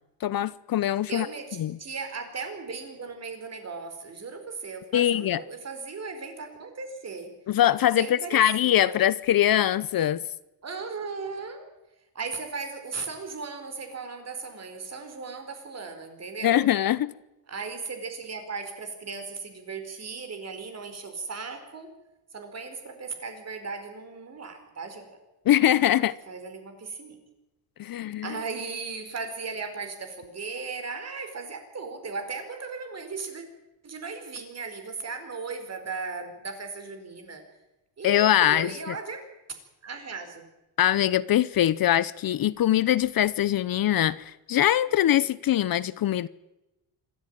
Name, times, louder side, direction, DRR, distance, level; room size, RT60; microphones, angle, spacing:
voice 1, 0.2-1.3 1.6-1.8 4.9-5.4 7.5-10.2 16.4-17.1 25.5-26.2 27.8-28.4 38.0-39.0 40.8-46.3, left 12 dB, 50° left, 0.7 m, -23 dB
voice 2, 1.1-7.4 7.9-9.0 10.6-11.7 12.1-16.7 17.5-21.9 22.3-25.2 26.3-27.2 28.2-33.4 33.8-37.4 38.0-39.3 39.8-40.5, right 4 dB, 35° right, 4.8 m, -37 dB
26.0 x 14.0 x 9.1 m
cardioid pair, 140°, 45 cm